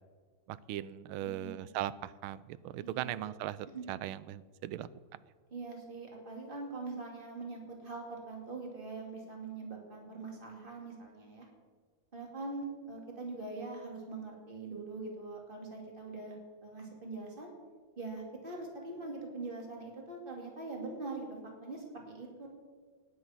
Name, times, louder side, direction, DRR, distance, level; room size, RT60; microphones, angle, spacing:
voice 1, 0.5-4.9, right 13 dB, 80° right, 17 dB, 1.4 m, -39 dB
voice 2, 1.2-1.7 2.8-3.3 3.7-3.8 5.5-11.5 12.1-16.4 16.6-17.5 18.0-22.5, right 3 dB, 25° right, 0 dB, 2.8 m, -43 dB
18.0 x 9.6 x 5.9 m, 1.5 s
omnidirectional pair, 2.3 m